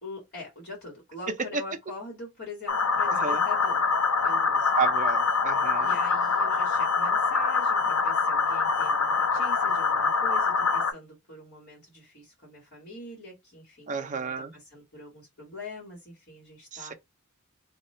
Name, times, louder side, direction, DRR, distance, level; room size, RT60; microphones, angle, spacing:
voice 1, 0.0-3.8 4.2-4.8 5.7-16.9, left 2 dB, 50° left, 1.7 m, -43 dB
sound 1, 2.7-10.9, left 4 dB, 80° left, 0.7 m, -24 dB
voice 2, 3.1-3.4 4.8-5.9 13.9-14.5 16.7-16.9, right 5 dB, 35° right, 0.6 m, -31 dB
2.8 x 2.3 x 4.2 m
head